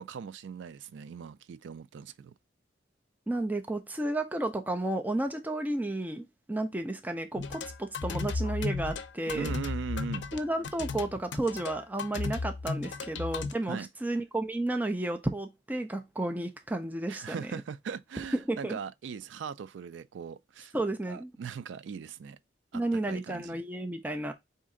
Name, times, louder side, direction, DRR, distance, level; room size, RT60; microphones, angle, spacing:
voice 1, 0.0-2.3 9.3-10.3 13.7-13.9 17.1-20.7 21.1-22.4 22.7-22.8 23.1-23.6, right 6 dB, 80° right, 0.4 m, -39 dB
voice 2, 3.3-9.5 10.3-17.5 18.5-18.8 20.7-21.3 22.7-24.3, right 2 dB, 10° right, 0.4 m, -32 dB
sound 1, 7.4-13.5, left 4 dB, 70° left, 0.5 m, -34 dB
4.2 x 2.8 x 3.6 m
head